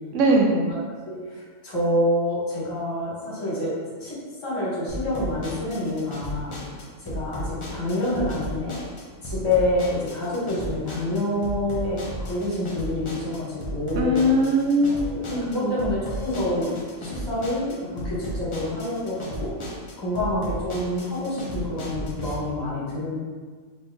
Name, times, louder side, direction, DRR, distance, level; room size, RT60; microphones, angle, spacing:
voice 1, 0.1-0.5 14.0-15.8, right 1 dB, 80° right, 1 dB, 0.9 m, -21 dB
voice 2, 1.0-3.7 4.0-4.2 4.4-6.5 7.0-8.7 9.2-14.3 14.9-16.7 17.0-19.5 20.0-23.1, left 1 dB, 20° left, -9 dB, 1.1 m, -27 dB
sound 1, 4.9-22.3, equal, 35° left, 0.5 m, -35 dB
4.4 x 2.9 x 2.2 m, 1.5 s
omnidirectional pair, 1.3 m